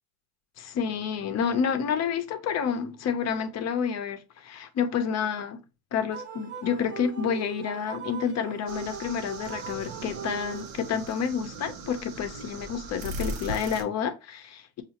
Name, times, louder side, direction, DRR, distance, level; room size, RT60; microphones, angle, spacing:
voice 1, 0.6-5.6 5.9-14.8, left 7 dB, 40° left, 0.6 m, -29 dB
sound 1, 6.1-11.0, right 7 dB, 30° right, 0.7 m, -40 dB
sound 2, 8.7-13.8, right 2 dB, 90° right, 0.8 m, -39 dB
5.3 x 2.4 x 2.8 m
supercardioid pair, 100°, 41 cm